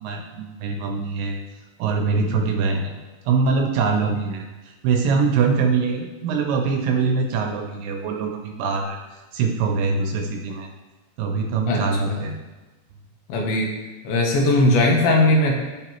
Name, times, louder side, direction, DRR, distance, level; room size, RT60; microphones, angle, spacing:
voice 1, 0.0-1.4 1.8-2.9 3.3-10.7 11.2-12.4, right 4 dB, 80° right, 2 dB, 2.1 m, -23 dB
voice 2, 11.7-12.3 13.3-13.7 14.0-15.5, left 1 dB, 80° left, 0 dB, 2.7 m, -19 dB
11.5 x 4.0 x 3.0 m, 1.2 s
omnidirectional pair, 4.2 m